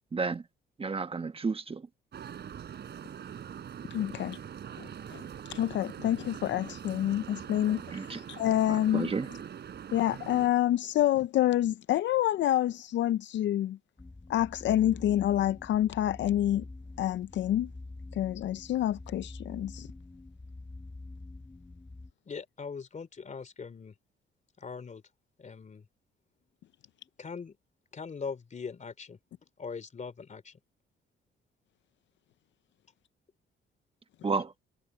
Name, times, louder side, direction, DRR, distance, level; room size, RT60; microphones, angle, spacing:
voice 1, 0.1-0.4 0.8-1.8 7.9-8.2 8.9-9.3 34.2-34.5, right 4 dB, 30° right, 1.3 m, -31 dB
sound 1, 2.1-10.5, right 8 dB, 60° right, 4.4 m, -43 dB
voice 2, 3.9-4.4 4.8-5.2 5.5-9.1 9.9-13.8 14.3-16.6 17.0-17.7 18.1-19.9, left 12 dB, 65° left, 0.5 m, -28 dB
sound 2, 14.0-22.1, left 2 dB, 15° left, 1.4 m, -46 dB
voice 3, 22.2-23.9 24.6-25.0 25.4-25.8 27.2-27.6 27.9-30.6, left 5 dB, 40° left, 3.1 m, -41 dB
cardioid pair, 90°, 20 cm